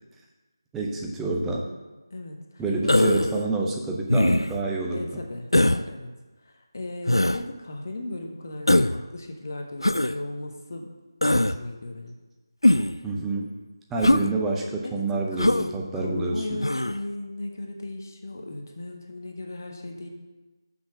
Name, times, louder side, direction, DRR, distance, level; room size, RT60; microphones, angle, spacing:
voice 1, 0.7-1.7 2.6-5.2 13.0-13.5 13.9-16.7, right 3 dB, 5° right, -1 dB, 0.5 m, -28 dB
voice 2, 2.1-3.0 4.9-6.1 6.4-10.9 11.2-12.1 14.1-14.3 14.8-20.1, left 2 dB, 40° left, 2 dB, 0.9 m, -36 dB
Human voice, 2.9-3.4 4.1-4.6 5.5-5.8 7.1-7.4 8.7-9.0 9.8-10.1 11.2-11.6 12.6-13.0 14.0-14.3 15.4-15.7 16.6-17.0, left 1 dB, 85° left, 0.4 m, -20 dB
6.4 x 5.8 x 5.8 m, 1.2 s
figure-of-eight pair, 160°, 2 cm